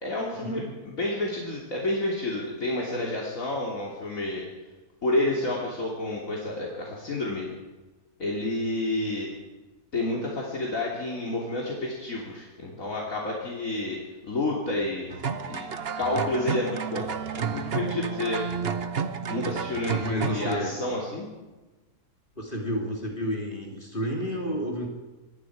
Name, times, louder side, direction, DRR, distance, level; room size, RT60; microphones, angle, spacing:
voice 1, 0.0-4.4 5.0-7.5 8.2-9.3 9.9-14.0 14.3-15.7 16.0-18.4 19.3-21.3, left 2 dB, 60° left, -3 dB, 3.5 m, -30 dB
sound 1, 15.1-20.5, right 6 dB, 45° right, 1.1 m, -31 dB
voice 2, 19.9-20.7 22.4-24.9, equal, 35° left, -1 dB, 3.4 m, -31 dB
25.5 x 20.5 x 4.9 m, 1.2 s
omnidirectional pair, 1.6 m